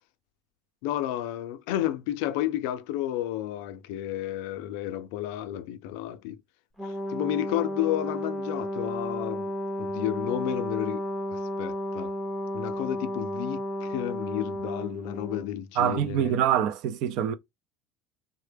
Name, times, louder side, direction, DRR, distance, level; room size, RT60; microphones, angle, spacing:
voice 1, 0.8-6.4 6.9-9.5 9.8-11.0 11.3-12.1 12.5-16.4, left 13 dB, 75° left, 0.4 m, -31 dB
Brass instrument, 6.8-15.5, left 1 dB, 5° right, 0.6 m, -33 dB
voice 2, 15.8-17.3, right 9 dB, 55° right, 0.5 m, -25 dB
3.7 x 2.1 x 3.3 m
cardioid pair, 165°, 0 cm